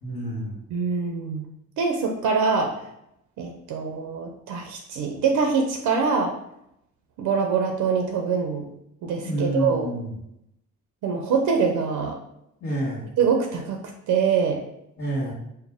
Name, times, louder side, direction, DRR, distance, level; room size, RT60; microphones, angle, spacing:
voice 1, 0.0-0.6 9.2-10.1 12.6-13.1 15.0-15.3, right 1 dB, 60° left, -9 dB, 1.4 m, -28 dB
voice 2, 0.7-1.4 1.8-2.7 3.4-6.3 7.2-8.7 9.0-10.0 11.0-12.2 13.2-13.8 14.1-14.6, right 5 dB, 85° right, 3 dB, 0.6 m, -24 dB
4.3 x 2.1 x 3.5 m, 0.79 s
cardioid pair, 90°, 30 cm